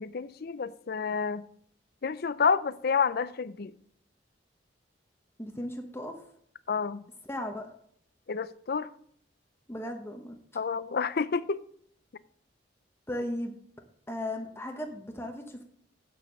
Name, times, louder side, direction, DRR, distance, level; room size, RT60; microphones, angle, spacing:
voice 1, 0.0-1.4 2.0-3.7 6.7-7.0 8.3-8.9 10.5-11.6, left 5 dB, 55° left, 0.5 m, -29 dB
voice 2, 5.4-6.2 7.2-7.7 9.7-10.4 13.1-13.5 14.1-15.6, left 1 dB, 15° left, 0.9 m, -36 dB
8.0 x 7.0 x 6.1 m
head